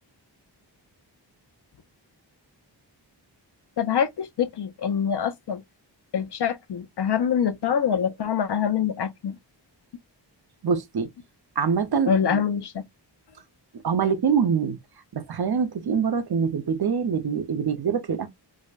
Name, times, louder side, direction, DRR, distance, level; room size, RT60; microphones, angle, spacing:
voice 1, 3.8-5.6 6.1-9.3 12.1-12.8, left 8 dB, 65° left, 0.6 m, -25 dB
voice 2, 10.6-11.1 11.6-12.4 13.8-14.8 15.1-18.3, right 6 dB, 60° right, 0.7 m, -24 dB
4.8 x 2.1 x 2.4 m
wide cardioid pair, 125°, 44 cm